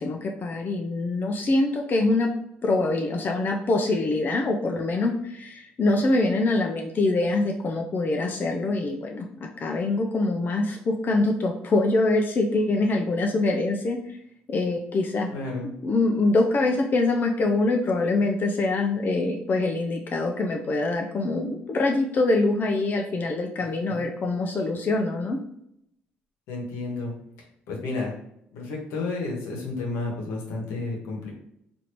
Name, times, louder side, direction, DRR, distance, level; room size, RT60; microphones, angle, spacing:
voice 1, 0.0-2.3 2.6-14.2 14.5-15.3 15.8-25.4, left 2 dB, 40° left, 2 dB, 0.4 m, -24 dB
voice 2, 15.3-15.7 23.6-23.7 26.5-27.1 27.7-28.1 28.5-31.3, left 3 dB, 80° left, -1 dB, 1.0 m, -31 dB
3.0 x 2.5 x 3.0 m, 0.75 s
supercardioid pair, 65°, 5 cm